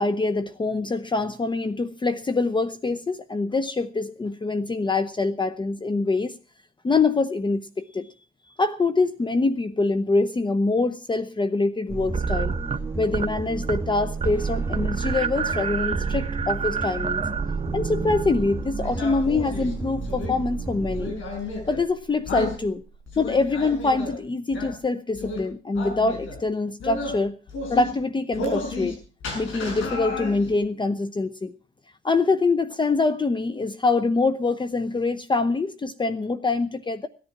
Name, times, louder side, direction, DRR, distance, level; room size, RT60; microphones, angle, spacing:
voice 1, 0.0-6.3 6.8-8.1 8.6-12.6 13.0-17.2 17.7-21.1 21.7-22.8 23.2-27.4 27.7-28.9 29.3-31.5 32.0-37.1, left 3 dB, 25° left, 12 dB, 0.8 m, -24 dB
sound 1, 11.9-22.1, right 3 dB, 10° right, 1.9 m, -33 dB
sound 2, 12.1-13.3 13.6-13.9 14.2-19.0, right 6 dB, 30° right, 1.0 m, -28 dB
sound 3, 18.8-20.3 20.9-21.8 22.3-22.6 23.1-24.1 24.5-24.7 25.2-25.4 25.8-26.4 26.8-27.2 27.5-27.9 28.3-28.9 29.2-30.5, left 2 dB, 80° left, 6.7 m, -32 dB
18.0 x 10.5 x 5.9 m, 0.38 s
cardioid pair, 90°, 20 cm